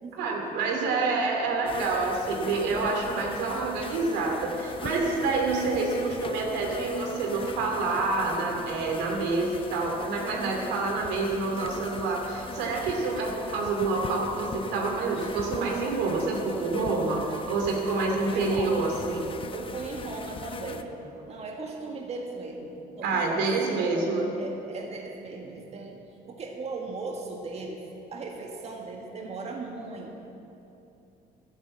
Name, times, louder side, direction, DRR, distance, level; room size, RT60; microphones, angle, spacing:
voice 1, 0.2-19.3 23.0-24.3, right 3 dB, 90° right, 0 dB, 2.6 m, -27 dB
sound 1, 1.7-20.8, left 5 dB, 30° left, 0.7 m, -40 dB
voice 2, 18.3-18.9 19.5-21.0 21.3-24.1 24.3-26.0 26.3-27.8 28.1-30.2, right 3 dB, 40° right, 0 dB, 1.7 m, -38 dB
11.5 x 11.0 x 7.7 m, 2.8 s
cardioid pair, 110°, 17 cm